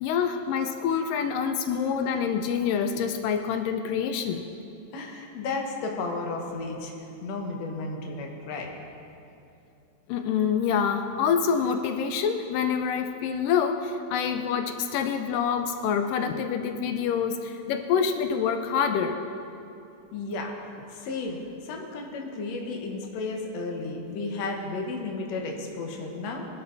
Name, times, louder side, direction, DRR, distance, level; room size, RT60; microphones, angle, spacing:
voice 1, 0.0-4.5 10.1-19.2, left 7 dB, 85° left, 6 dB, 2.4 m, -26 dB
voice 2, 4.9-8.7 20.1-20.5 20.9-26.5, left 3 dB, 60° left, 1 dB, 2.4 m, -33 dB
22.5 x 11.0 x 4.1 m, 2.7 s
omnidirectional pair, 3.7 m